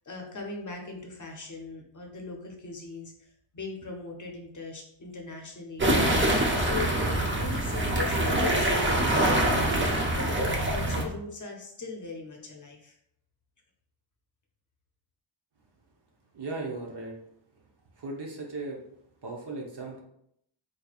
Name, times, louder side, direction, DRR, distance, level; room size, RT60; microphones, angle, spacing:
voice 1, 0.1-3.1 3.5-9.2 9.7-12.9, left 3 dB, 40° left, 1 dB, 0.7 m, -39 dB
sound 1, 5.8-11.0, right 1 dB, 25° right, 0.6 m, -25 dB
voice 2, 16.3-17.2 18.0-18.8 19.2-20.0, right 3 dB, 55° right, 0 dB, 0.9 m, -36 dB
4.0 x 3.1 x 2.4 m, 0.72 s
wide cardioid pair, 110°, 48 cm